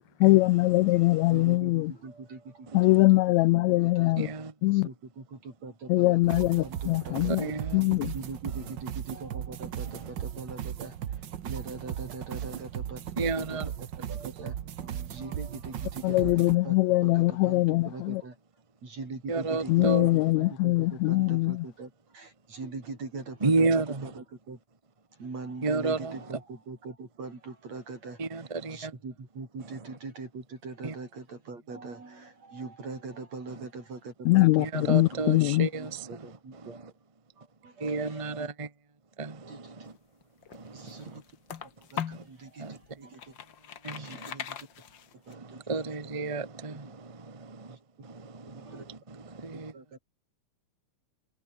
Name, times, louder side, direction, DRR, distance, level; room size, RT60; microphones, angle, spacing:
voice 1, 0.2-1.9 2.7-4.3 4.6-4.9 5.9-8.1 16.0-18.2 19.7-21.6 34.2-35.7, left 20 dB, 90° left, 1.6 m, -23 dB
voice 2, 1.3-3.2 3.5-4.1 4.6-7.5 8.1-13.0 13.4-16.8 17.0-18.4 18.8-24.6 25.2-28.4 28.7-35.5 35.8-36.8 37.4-38.5 39.5-39.9 40.7-41.2 41.6-43.3 43.9-44.7 45.3-46.0 46.7-46.8 47.7-47.8 48.5-48.9 49.5-50.0, right 3 dB, 55° right, 7.5 m, -42 dB
voice 3, 4.2-4.5 7.3-7.8 9.9-10.1 13.2-13.7 19.3-20.1 23.4-24.1 25.6-26.2 28.2-28.9 30.8-30.9 34.6-36.3 36.6-36.8 37.8-38.7 39.2-39.9 40.5-41.2 42.1-42.2 42.6-42.8 43.8-44.3 45.3-47.7 48.0-49.7, right 3 dB, 35° right, 0.5 m, -32 dB
sound 1, 6.2-16.5, right 10 dB, 85° right, 1.0 m, -37 dB
sound 2, 40.2-42.3 42.8-45.3, left 9 dB, 55° left, 1.4 m, -40 dB
omnidirectional pair, 3.7 m